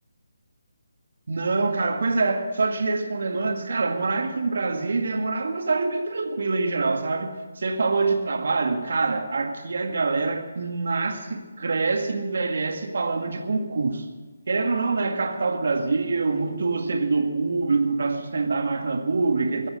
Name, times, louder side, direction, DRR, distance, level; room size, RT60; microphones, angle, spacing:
voice 1, 1.3-14.1 14.5-19.7, right 3 dB, 55° right, 1.9 m, -25 dB
22.0 x 7.8 x 7.7 m
figure-of-eight pair, 150°, 0 cm